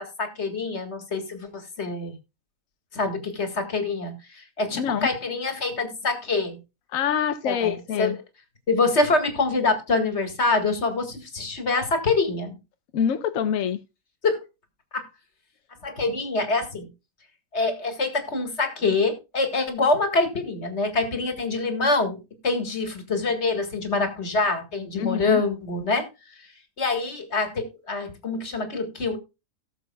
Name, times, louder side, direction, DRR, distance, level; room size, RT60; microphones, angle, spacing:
voice 1, 0.0-2.1 2.9-4.2 4.6-6.6 7.5-8.1 8.7-12.6 14.2-14.4 14.9-15.1 15.8-16.9 17.5-22.2 22.4-26.1 26.8-29.2, left 3 dB, 50° left, 2.1 m, -25 dB
voice 2, 4.7-5.1 6.9-8.2 12.9-13.8 25.0-25.4, left 8 dB, 75° left, 1.1 m, -25 dB
18.0 x 6.9 x 2.2 m
omnidirectional pair, 1.5 m